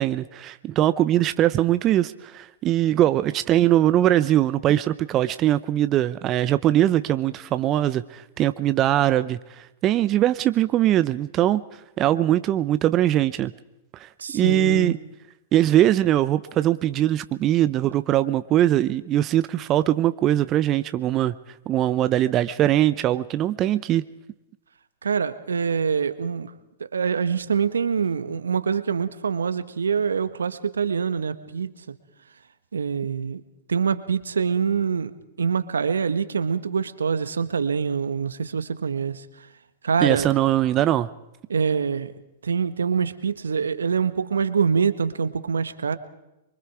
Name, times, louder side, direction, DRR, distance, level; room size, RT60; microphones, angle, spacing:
voice 1, 0.0-11.6 12.0-13.5 14.0-15.0 15.5-21.3 21.7-24.0 40.0-41.1, right 13 dB, 30° right, 13 dB, 0.7 m, -21 dB
voice 2, 14.2-14.9 25.0-26.5 26.8-31.7 32.7-33.4 33.7-39.2 39.8-40.3 41.5-42.1 42.4-46.0, right 6 dB, 85° right, 12 dB, 1.4 m, -25 dB
25.0 x 23.5 x 4.9 m, 0.94 s
hypercardioid pair, 115°, 0 cm